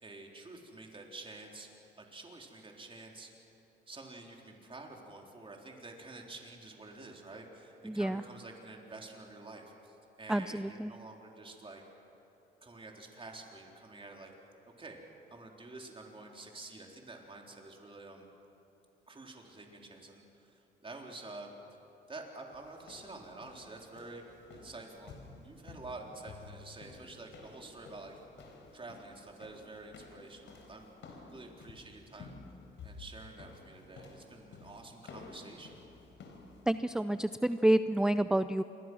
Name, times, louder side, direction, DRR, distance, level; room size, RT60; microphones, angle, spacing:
voice 1, 0.0-1.7 2.0-3.3 3.9-11.8 12.6-14.3 14.8-15.0 15.3-18.3 19.1-21.5 22.1-24.2 24.5-28.1 28.7-32.4 32.8-35.9, right 2 dB, 25° right, 1 dB, 3.9 m, -49 dB
voice 2, 7.9-8.2 10.3-10.9 36.7-38.6, right 1 dB, 5° right, 12 dB, 0.5 m, -29 dB
sound 1, 22.5-36.8, left 3 dB, 70° left, 4.1 m, -53 dB
27.5 x 22.0 x 6.3 m, 3.0 s
cardioid pair, 90°, 20 cm